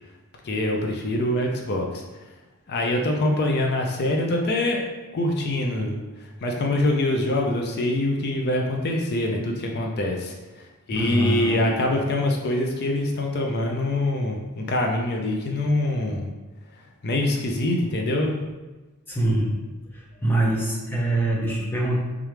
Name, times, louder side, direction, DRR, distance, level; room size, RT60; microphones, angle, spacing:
voice 1, 0.4-2.0 2.7-4.8 5.1-6.0 6.4-16.3 17.0-18.3, left 1 dB, 50° left, 1 dB, 0.5 m, -24 dB
voice 2, 10.9-11.7 19.1-19.5 20.2-22.0, right 1 dB, 10° left, -3 dB, 0.7 m, -24 dB
3.6 x 3.2 x 3.3 m, 1.2 s
head